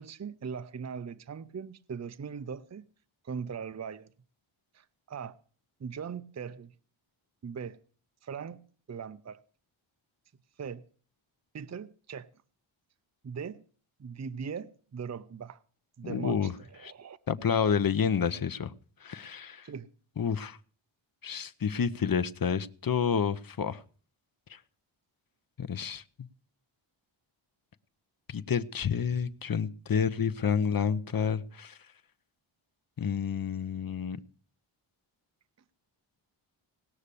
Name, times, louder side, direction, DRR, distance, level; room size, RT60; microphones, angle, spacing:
voice 1, 0.0-2.9 3.2-4.1 4.7-5.4 5.8-6.7 7.4-7.8 8.2-9.4 10.6-10.8 11.5-12.3 13.2-13.6 14.0-15.6 16.0-17.2 19.6-19.9, right 6 dB, 35° right, 0.6 m, -40 dB
voice 2, 16.0-16.5 16.8-16.9 17.3-18.7 19.0-19.6 20.2-20.6 21.2-23.8 24.5-24.6 25.6-26.0 28.3-31.7 33.0-34.2, left 7 dB, 45° left, 0.8 m, -29 dB
18.5 x 6.5 x 8.3 m
wide cardioid pair, 120°, 50 cm